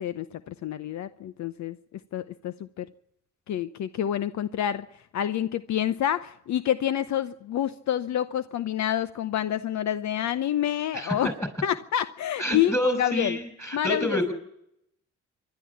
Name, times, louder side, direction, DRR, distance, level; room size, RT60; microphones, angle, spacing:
voice 1, 0.0-2.9 3.5-4.9 5.1-11.3 11.6-13.4 13.7-14.2, left 11 dB, 65° left, 14 dB, 0.8 m, -28 dB
voice 2, 10.9-11.3 12.4-14.3, equal, 10° left, 8 dB, 5.9 m, -28 dB
26.0 x 11.5 x 8.5 m, 0.77 s
cardioid pair, 90°, 30 cm